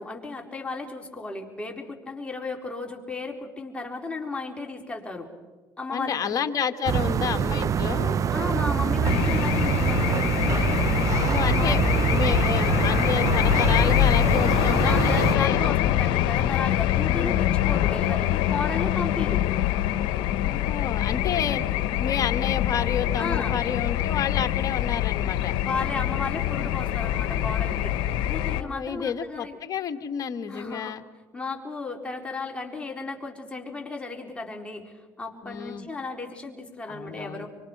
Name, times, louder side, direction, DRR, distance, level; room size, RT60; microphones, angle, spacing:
voice 1, 0.0-5.3 5.8-6.3 8.3-10.3 11.5-12.0 14.8-19.5 23.2-23.6 25.6-28.0 28.3-29.6 30.5-30.9 31.3-37.5, left 3 dB, 15° left, 1 dB, 4.4 m, -34 dB
voice 2, 5.9-8.2 11.2-15.6 16.8-17.6 20.4-21.6 22.0-25.5 28.5-31.0 35.4-35.9 36.9-37.5, left 7 dB, 50° left, 8 dB, 1.7 m, -30 dB
sound 1, 6.9-15.4, right 8 dB, 45° right, 0.6 m, -25 dB
sound 2, 9.0-28.6, left 13 dB, 75° left, 1.1 m, -24 dB
25.5 x 24.0 x 6.1 m, 1.3 s
supercardioid pair, 80°, 8 cm